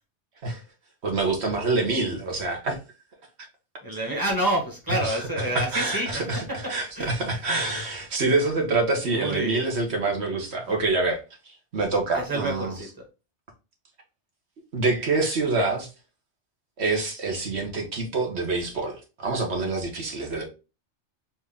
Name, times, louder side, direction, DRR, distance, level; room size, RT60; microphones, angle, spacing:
voice 1, 1.0-2.8 5.0-5.3 5.5-12.7 14.7-15.9 16.8-20.4, right 3 dB, 65° right, 1.5 m, -26 dB
voice 2, 3.8-6.1 6.6-7.4 9.0-9.6 12.1-12.9, right 1 dB, 20° right, 1.4 m, -28 dB
4.5 x 2.8 x 3.6 m
omnidirectional pair, 1.2 m